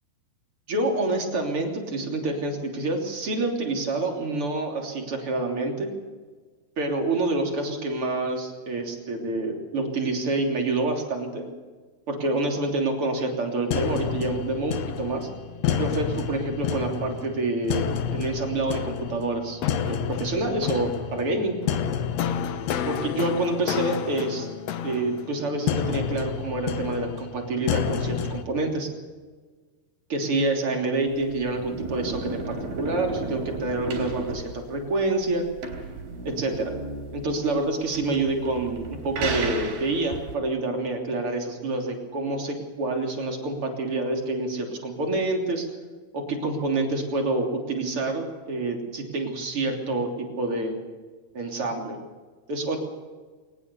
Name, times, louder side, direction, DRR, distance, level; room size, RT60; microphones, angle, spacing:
voice 1, 0.7-5.9 6.8-11.5 12.1-15.3 15.8-21.6 22.8-24.5 24.8-28.9 30.1-35.4 36.2-36.7 37.1-45.7 46.1-50.8 51.3-52.0 52.5-52.8, right 2 dB, 35° right, 2 dB, 3.8 m, -27 dB
sound 1, 13.7-28.4, left 8 dB, 70° left, 1.6 m, -29 dB
sound 2, 31.1-40.3, right 3 dB, 75° right, 5.4 m, -34 dB
22.0 x 19.5 x 7.0 m, 1.4 s
omnidirectional pair, 4.3 m